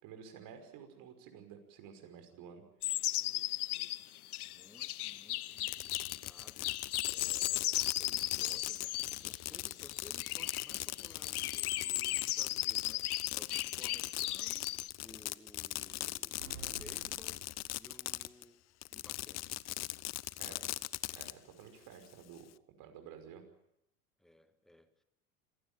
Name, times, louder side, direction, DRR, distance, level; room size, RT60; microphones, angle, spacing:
voice 1, 0.0-2.6 20.4-20.6 21.1-22.5 22.8-23.4, right 8 dB, 50° right, 5.7 m, -52 dB
sound 1, 2.8-14.9, left 15 dB, 75° left, 0.8 m, -36 dB
voice 2, 3.2-16.5 16.8-17.5 17.8-18.7 18.9-19.6 20.4-20.8 24.2-25.0, left 1 dB, ahead, 2.0 m, -59 dB
Fireworks, 5.5-18.4 18.8-21.3, left 17 dB, 35° left, 0.9 m, -40 dB
sound 2, 16.4-18.1, right 5 dB, 75° right, 4.9 m, -51 dB
27.0 x 17.5 x 9.0 m
hypercardioid pair, 90°, 45 cm